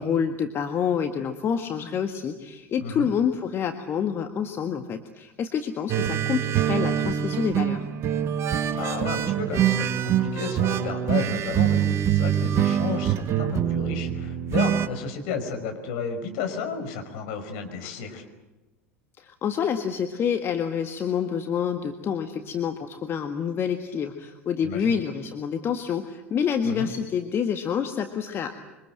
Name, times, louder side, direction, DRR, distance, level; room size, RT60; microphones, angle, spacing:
voice 1, 0.0-7.9 19.2-28.6, left 7 dB, 35° left, 6 dB, 1.8 m, -27 dB
voice 2, 2.8-3.1 8.7-18.2 24.6-25.0 26.6-26.9, left 5 dB, 55° left, 6 dB, 5.5 m, -32 dB
sound 1, 5.9-14.9, right 10 dB, 40° right, 1.6 m, -24 dB
26.5 x 25.0 x 7.8 m, 1.1 s
figure-of-eight pair, 75°, 7 cm